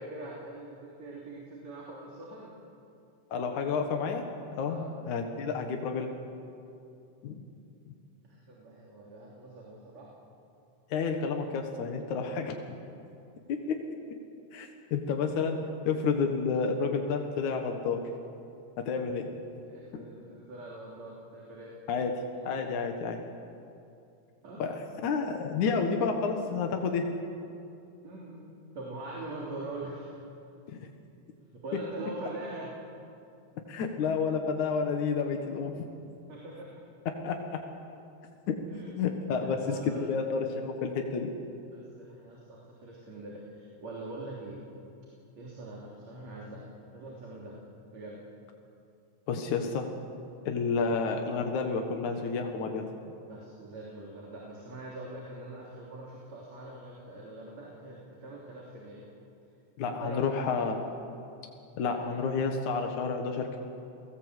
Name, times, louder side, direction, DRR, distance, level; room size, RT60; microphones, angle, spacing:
voice 1, 0.0-2.5 4.6-4.9 8.2-10.1 19.7-21.7 24.4-24.7 28.0-30.2 31.5-32.8 36.3-36.8 38.7-39.0 39.3-40.2 41.7-44.6 45.4-46.6 46.9-47.6 47.9-48.2 53.3-59.1 59.8-60.6 61.7-62.2, right 2 dB, 60° right, -3 dB, 4.6 m, -43 dB
voice 2, 3.3-4.3 4.5-6.1 7.2-7.4 7.9-8.0 10.9-12.6 13.5-13.8 14.5-15.6 15.9-18.0 18.9-19.3 21.9-22.1 22.5-23.2 24.6-27.1 30.7-30.8 33.7-35.9 37.2-37.4 38.5-38.6 39.0-41.3 49.3-49.9 50.5-52.9 59.8-60.8 61.8-63.6, left 5 dB, 75° left, 4 dB, 3.0 m, -30 dB
29.5 x 19.0 x 8.2 m, 2.6 s
omnidirectional pair, 3.4 m